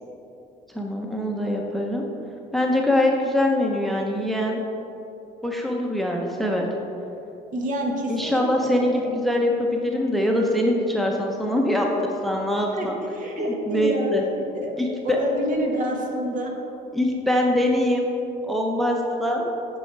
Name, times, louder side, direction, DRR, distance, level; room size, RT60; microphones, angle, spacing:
voice 1, 0.7-2.1 2.5-4.6 5.4-6.7 8.1-13.0 13.7-14.2 14.8-15.2 16.9-18.1 18.4-19.5, left 1 dB, ahead, 0 dB, 0.8 m, -23 dB
voice 2, 7.5-9.0 12.7-12.9 13.1-14.1 14.5-14.7 15.0-16.5, equal, 50° right, 1 dB, 1.4 m, -28 dB
9.0 x 5.4 x 4.6 m, 2.8 s
cardioid pair, 110°, 17 cm